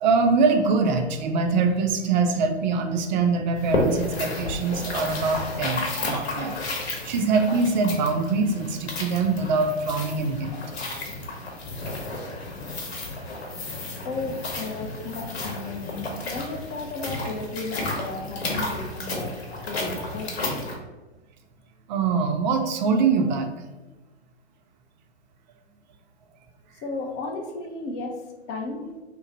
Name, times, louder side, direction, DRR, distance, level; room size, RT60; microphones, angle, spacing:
voice 1, 0.0-6.6 7.0-10.5 21.9-23.5, right 4 dB, 45° right, 6 dB, 0.4 m, -23 dB
sound 1, 3.6-20.8, left 2 dB, 65° left, 1.0 m, -32 dB
voice 2, 14.0-19.4 19.7-20.4 26.8-28.9, left 3 dB, 25° left, 4 dB, 0.4 m, -34 dB
3.0 x 2.1 x 3.8 m, 1.1 s
hypercardioid pair, 115°, 34 cm